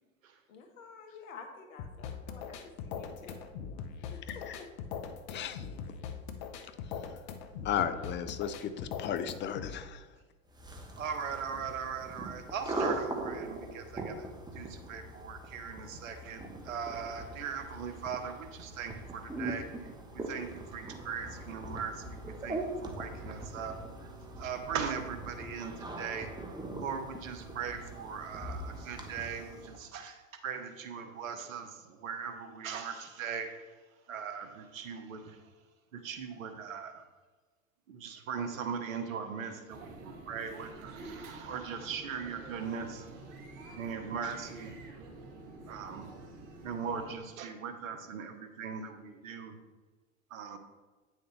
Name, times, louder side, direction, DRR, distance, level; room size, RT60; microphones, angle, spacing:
voice 1, 0.5-3.4 4.1-4.7, left 5 dB, 75° left, 4 dB, 1.5 m, -50 dB
sound 1, 1.8-9.8, left 7 dB, 55° left, 1.0 m, -41 dB
voice 2, 4.1-4.6 5.3-6.0 7.6-10.1, left 8 dB, 30° left, 10 dB, 0.6 m, -35 dB
sound 2, 10.5-29.8, right 2 dB, 10° right, 1.1 m, -41 dB
voice 3, 11.0-24.1 24.4-26.3 26.8-33.5 34.1-35.4 35.9-37.0 37.9-43.1 43.8-44.8 45.7-46.1 46.6-49.5 50.3-50.6, right 6 dB, 75° right, 7 dB, 1.2 m, -39 dB
sound 3, 39.7-47.2, right 2 dB, 50° right, 1.6 m, -48 dB
9.1 x 6.3 x 3.3 m, 1.3 s
hypercardioid pair, 95°, 40 cm